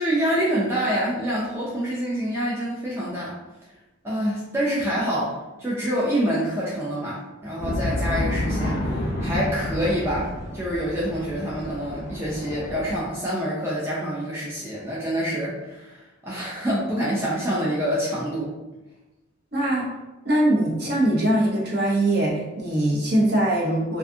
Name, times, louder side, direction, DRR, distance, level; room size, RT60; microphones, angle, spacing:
voice 1, 0.0-3.3 4.0-5.3 5.6-18.5, equal, 10° right, -7 dB, 0.3 m, -26 dB
sound 1, 7.6-13.0, left 1 dB, 45° left, 0.5 m, -29 dB
voice 2, 19.5-19.9 20.2-24.0, right 1 dB, 50° right, -3 dB, 0.6 m, -22 dB
2.5 x 2.3 x 2.6 m, 1.1 s
head